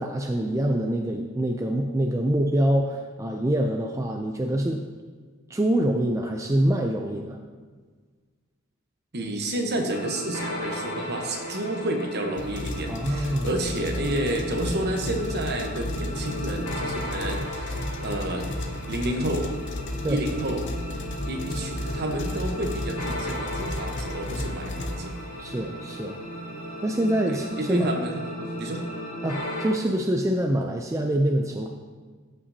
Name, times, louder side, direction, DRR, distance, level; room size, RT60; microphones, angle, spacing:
voice 1, 0.0-4.9 5.5-7.4 12.9-13.5 20.0-20.2 25.4-26.2 26.8-27.9 29.2-31.7, right 1 dB, 15° right, 2 dB, 0.3 m, -25 dB
voice 2, 9.1-18.5 18.9-19.5 20.1-20.7 21.2-25.1 27.3-28.8, right 1 dB, 50° right, 3 dB, 1.0 m, -30 dB
sound 1, 9.9-29.7, equal, 80° left, 2.1 m, -36 dB
sound 2, 12.3-25.5, left 1 dB, 55° left, 0.6 m, -33 dB
13.0 x 5.8 x 2.7 m, 1.5 s
head